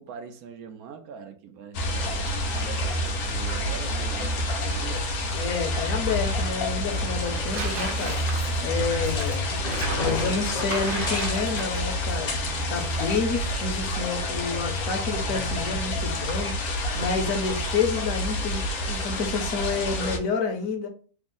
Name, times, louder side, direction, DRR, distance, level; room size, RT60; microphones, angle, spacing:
voice 1, 0.0-5.1, right 7 dB, 90° right, 1.1 m, -42 dB
sound 1, 1.7-20.2, left 1 dB, 90° left, 1.2 m, -28 dB
Tearing, 4.0-16.3, right 4 dB, 55° right, 0.6 m, -41 dB
voice 2, 5.3-8.2 8.6-9.5 9.9-12.3 12.7-16.5 16.9-20.9, left 4 dB, 70° left, 1.1 m, -29 dB
sound 2, 8.7-12.6, left 2 dB, 45° left, 0.6 m, -33 dB
3.4 x 2.0 x 3.6 m
omnidirectional pair, 1.5 m